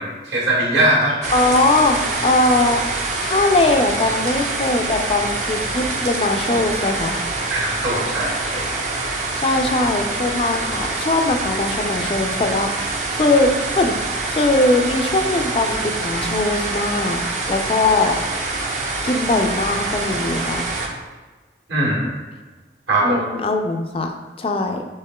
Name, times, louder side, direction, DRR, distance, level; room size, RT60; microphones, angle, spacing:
voice 1, 0.0-1.2 7.5-8.7 21.7-22.1 22.9-23.2, right 1 dB, 70° right, -3 dB, 1.4 m, -20 dB
sound 1, 1.2-20.9, right 3 dB, 40° right, 0.6 m, -25 dB
voice 2, 1.3-2.8 3.2-7.2 9.4-14.0 14.3-17.2 17.5-18.2 19.0-20.8 23.0-24.9, left 2 dB, 30° left, 4 dB, 0.4 m, -20 dB
6.4 x 3.6 x 2.3 m, 1.3 s
head